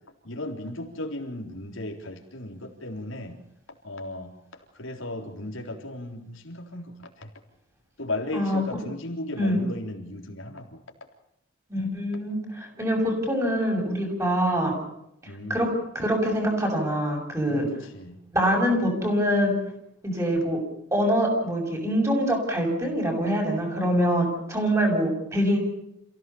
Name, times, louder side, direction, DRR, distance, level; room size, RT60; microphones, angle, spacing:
voice 1, 0.2-3.4 3.8-4.4 4.7-7.3 8.0-10.8 15.2-15.7 17.5-18.2, left 1 dB, 80° left, 3 dB, 3.8 m, -36 dB
voice 2, 11.7-14.7 15.5-15.7 15.9-17.7 18.3-19.5 20.0-20.6 20.9-25.6, equal, 15° right, 1 dB, 6.7 m, -24 dB
28.0 x 16.5 x 7.1 m, 0.79 s
head